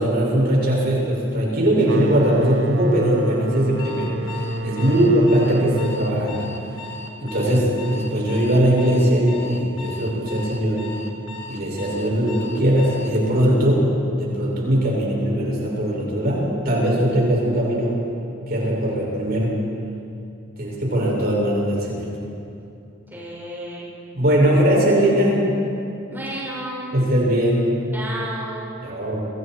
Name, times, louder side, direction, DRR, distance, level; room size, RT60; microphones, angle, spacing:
voice 1, 0.0-4.1 4.6-6.4 7.2-10.9 11.5-18.0 18.5-19.5 20.6-22.2 24.1-25.4 26.9-27.7 28.8-29.2, right 1 dB, 50° right, -3 dB, 7.3 m, -20 dB
sound 1, 1.8-7.3, right 2 dB, 70° right, 1.1 m, -30 dB
Alarm, 3.8-13.2, left 3 dB, 70° left, 3.0 m, -37 dB
voice 2, 4.8-5.1 23.1-23.8 26.1-26.9 27.9-28.7, right 1 dB, 10° right, -7 dB, 6.6 m, -32 dB
30.0 x 27.0 x 4.8 m, 2.7 s
head